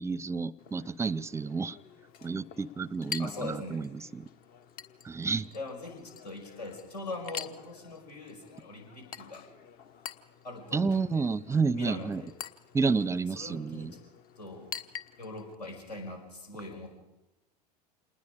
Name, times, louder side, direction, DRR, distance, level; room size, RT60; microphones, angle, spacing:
voice 1, 0.0-1.8 2.2-4.3 5.0-5.5 10.7-12.2 12.7-13.9, right 4 dB, 15° right, 0.6 m, -30 dB
Chink clink, 0.6-15.6, left 8 dB, 45° left, 1.2 m, -47 dB
voice 2, 3.2-3.8 5.5-9.5 10.4-11.3 11.7-12.3 13.3-14.0 14.4-14.7 15.2-17.0, left 2 dB, 80° left, 5.7 m, -41 dB
27.5 x 20.5 x 5.0 m
figure-of-eight pair, 80°, 21 cm